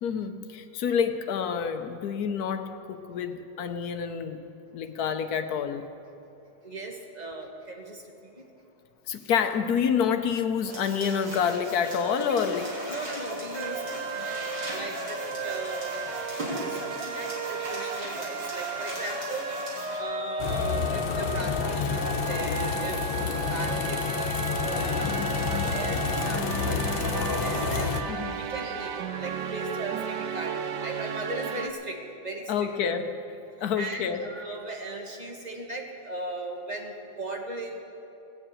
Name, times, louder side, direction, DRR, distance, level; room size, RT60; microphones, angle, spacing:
voice 1, 0.0-4.4 4.7-5.8 9.1-12.6 28.1-28.4 32.5-33.1 33.6-34.2, left 7 dB, 65° left, 8 dB, 1.2 m, -28 dB
voice 2, 6.6-8.5 12.3-12.5 12.9-16.0 16.6-19.5 20.0-24.0 24.6-27.9 28.4-32.7 33.7-37.8, right 2 dB, 25° right, 1 dB, 1.4 m, -38 dB
sound 1, 10.7-20.0, equal, 90° right, 3.9 m, -36 dB
sound 2, 13.5-31.7, right 5 dB, 70° right, 1.3 m, -34 dB
sound 3, 20.4-28.0, left 6 dB, 85° left, 1.6 m, -29 dB
18.5 x 7.2 x 8.9 m, 2.9 s
omnidirectional pair, 2.0 m